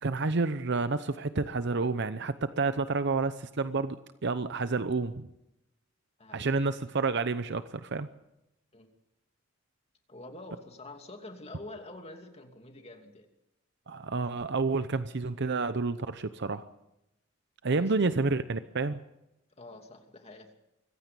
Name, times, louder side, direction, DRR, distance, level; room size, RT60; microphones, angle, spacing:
voice 1, 0.0-4.0 4.2-5.3 6.3-8.1 13.9-16.6 17.6-19.0, right 3 dB, 60° right, 12 dB, 0.8 m, -29 dB
voice 2, 6.2-6.5 8.7-8.9 10.1-13.3 17.8-18.2 19.6-20.5, left 2 dB, 30° left, 5 dB, 2.7 m, -47 dB
24.5 x 16.0 x 6.9 m, 0.87 s
head